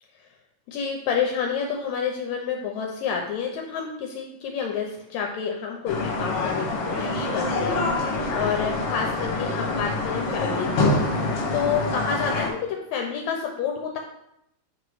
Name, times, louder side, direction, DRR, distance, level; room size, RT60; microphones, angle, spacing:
voice 1, 0.7-11.2 11.5-14.0, left 6 dB, 80° left, 1 dB, 1.8 m, -29 dB
sound 1, 5.9-12.5, left 2 dB, 60° left, 1.9 m, -26 dB
7.9 x 2.9 x 4.7 m, 0.81 s
omnidirectional pair, 3.3 m